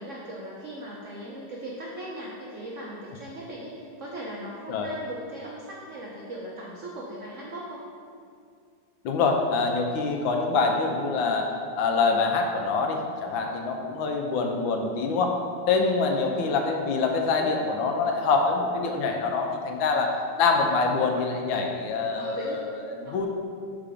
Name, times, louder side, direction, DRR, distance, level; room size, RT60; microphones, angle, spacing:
voice 1, 0.0-7.8 16.1-16.6 22.1-22.6 22.8-23.2, right 1 dB, 75° right, -4 dB, 0.7 m, -39 dB
voice 2, 9.0-11.5 11.8-15.3 15.7-20.1 20.4-22.8 23.1-23.3, left 4 dB, 75° left, 3 dB, 1.3 m, -25 dB
5.7 x 3.7 x 4.9 m, 2.3 s
omnidirectional pair, 2.3 m